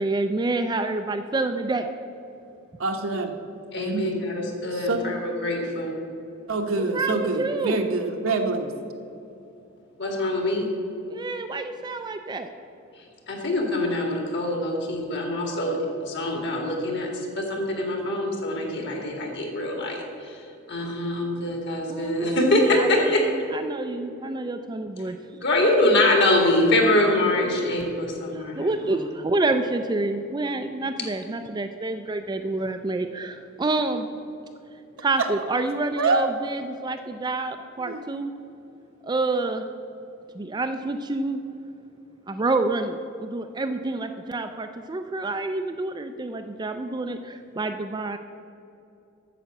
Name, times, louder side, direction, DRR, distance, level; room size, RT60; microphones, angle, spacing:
voice 1, 0.0-1.9 6.8-7.9 11.1-12.5 21.9-25.2 28.3-34.1 35.0-38.3 39.0-39.6 40.3-41.4 42.3-48.2, right 2 dB, 20° right, 6 dB, 0.4 m, -28 dB
voice 2, 2.8-3.3 3.8-4.1 4.7-5.0 6.5-8.7 35.2-35.3 36.0-36.3 37.9-38.0, right 3 dB, 80° right, 4 dB, 1.1 m, -25 dB
voice 3, 3.7-6.0 10.0-10.7 13.0-23.2 25.4-29.0, left 1 dB, 55° left, 1 dB, 2.0 m, -24 dB
8.9 x 6.9 x 7.5 m, 2.7 s
head